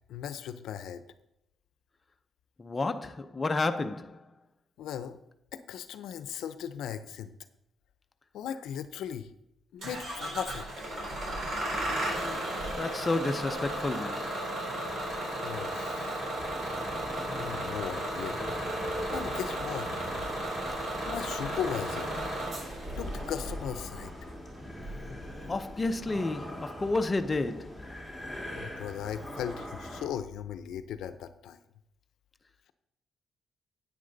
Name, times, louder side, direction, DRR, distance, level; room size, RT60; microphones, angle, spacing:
voice 1, 0.1-1.0 4.8-5.2 5.5-7.3 8.3-9.3 9.7-10.7 15.4-16.5 17.4-18.6 19.1-19.9 21.1-22.1 23.0-24.1 28.5-31.6, left 9 dB, 85° left, 0.6 m, -37 dB
voice 2, 2.6-4.3 12.8-14.3 25.5-27.8, left 3 dB, 25° left, 0.6 m, -31 dB
Bus / Engine starting, 9.8-26.0, right 1 dB, 55° right, 4.1 m, -35 dB
sound 1, 16.4-30.1, left 1 dB, 5° right, 2.1 m, -42 dB
9.8 x 8.8 x 4.0 m
cardioid pair, 110°, 0 cm